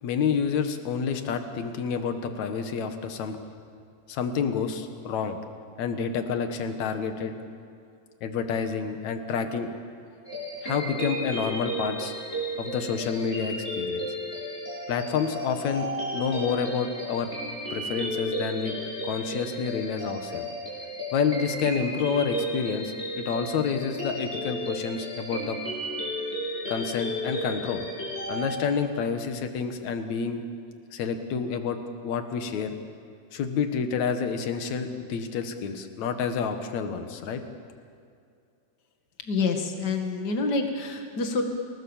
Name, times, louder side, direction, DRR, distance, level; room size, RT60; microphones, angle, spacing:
voice 1, 0.0-3.4 4.1-5.4 5.8-7.3 8.2-9.7 10.6-12.1 12.6-14.1 14.9-17.3 17.7-18.8 19.0-20.4 21.1-25.6 26.7-27.9 28.3-30.4 30.9-32.8 33.3-37.4, left 6 dB, 65° left, 7 dB, 2.7 m, -29 dB
sound 1, 10.2-28.6, equal, 20° left, 7.5 m, -33 dB
voice 2, 39.3-41.4, left 4 dB, 35° left, 4 dB, 2.3 m, -27 dB
28.5 x 19.5 x 7.3 m, 2.4 s
omnidirectional pair, 3.6 m